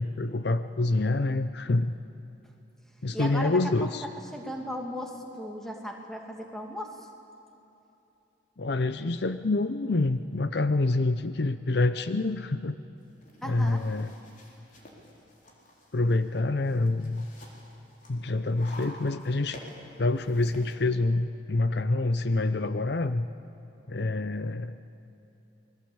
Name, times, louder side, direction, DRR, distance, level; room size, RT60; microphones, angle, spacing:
voice 1, 0.0-1.9 3.0-4.1 8.6-12.8 13.4-14.1 15.9-17.3 18.1-19.6 20.0-23.3 23.9-24.7, left 2 dB, 60° left, 11 dB, 0.7 m, -27 dB
voice 2, 3.1-4.0 4.3-7.1 13.4-13.9, equal, ahead, 2 dB, 2.5 m, -37 dB
sound 1, 13.0-20.7, left 1 dB, 45° left, 4.3 m, -50 dB
28.0 x 21.0 x 8.8 m, 3.0 s
head